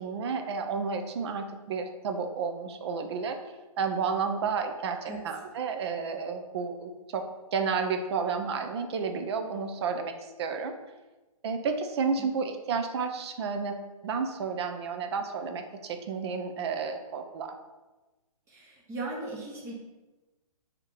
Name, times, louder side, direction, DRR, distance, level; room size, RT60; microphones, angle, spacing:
voice 1, 0.0-3.4 3.8-7.3 7.5-10.7 11.4-17.5, right 5 dB, 45° right, 6 dB, 0.5 m, -31 dB
voice 2, 18.5-19.7, right 2 dB, 15° right, -3 dB, 0.8 m, -38 dB
3.2 x 2.8 x 3.9 m, 1.1 s
hypercardioid pair, 140°, 19 cm